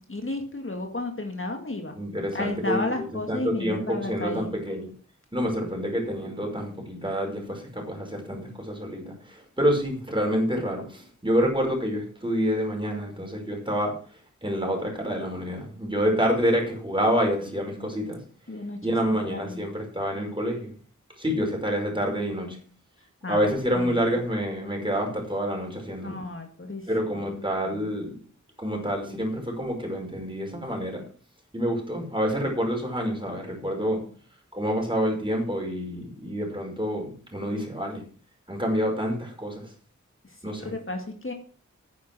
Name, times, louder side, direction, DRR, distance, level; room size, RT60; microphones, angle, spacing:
voice 1, 0.0-2.0 2.3-4.5 18.5-19.7 23.2-24.2 26.0-27.3 27.6-27.9 40.2-41.3, left 2 dB, 45° left, 4 dB, 2.1 m, -33 dB
voice 2, 2.0-2.8 3.3-4.9 5.3-13.9 14.4-18.2 18.8-20.7 21.2-22.6 23.3-26.2 26.9-28.1 28.6-31.0 31.5-34.0 34.5-38.0 38.5-39.7 40.4-40.7, equal, 15° right, 1 dB, 5.4 m, -27 dB
10.0 x 9.6 x 6.1 m, 0.43 s
wide cardioid pair, 70°, 30 cm